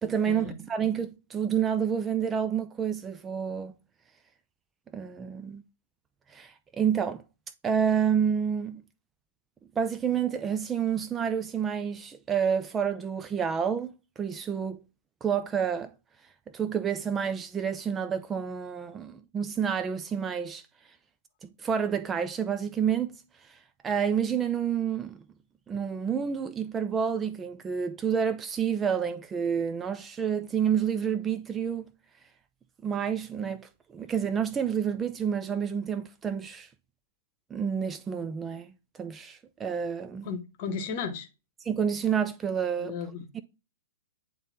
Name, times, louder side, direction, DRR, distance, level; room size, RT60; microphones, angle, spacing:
voice 1, 0.0-3.7 4.9-5.6 6.3-7.2 7.6-8.8 9.8-14.8 15.2-15.9 16.5-20.6 21.6-23.2 23.5-23.6 23.8-25.2 25.7-31.9 32.8-36.7 37.5-40.3 41.7-43.0, right 7 dB, 15° right, 0.4 m, -29 dB
voice 2, 40.2-41.3 42.8-43.4, left 6 dB, 40° left, 1.0 m, -35 dB
8.9 x 3.1 x 3.7 m
figure-of-eight pair, 110°, 0 cm